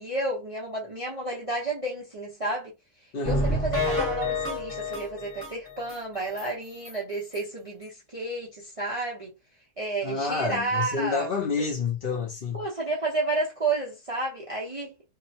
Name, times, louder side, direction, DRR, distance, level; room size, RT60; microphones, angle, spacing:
voice 1, 0.0-2.7 3.2-9.3 9.8-11.3 12.5-15.1, right 2 dB, 50° right, 0.4 m, -31 dB
voice 2, 3.1-3.5 10.0-12.6, left 4 dB, 60° left, 0.6 m, -29 dB
sound 1, 3.3-6.0 6.4-6.5 6.9-7.0 7.3-7.4, left 2 dB, 15° left, 0.7 m, -29 dB
2.8 x 2.0 x 2.7 m
omnidirectional pair, 1.7 m